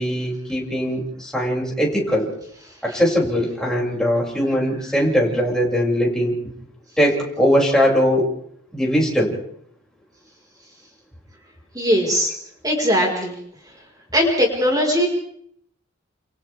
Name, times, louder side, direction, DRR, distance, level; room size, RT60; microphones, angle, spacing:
voice 1, 0.0-2.3 2.8-6.3 7.0-8.3 8.7-9.3, equal, 5° left, -3 dB, 6.7 m, -20 dB
voice 2, 11.8-12.3 12.6-13.3 14.1-15.1, equal, 20° right, -1 dB, 5.1 m, -19 dB
30.0 x 30.0 x 3.6 m, 0.67 s
head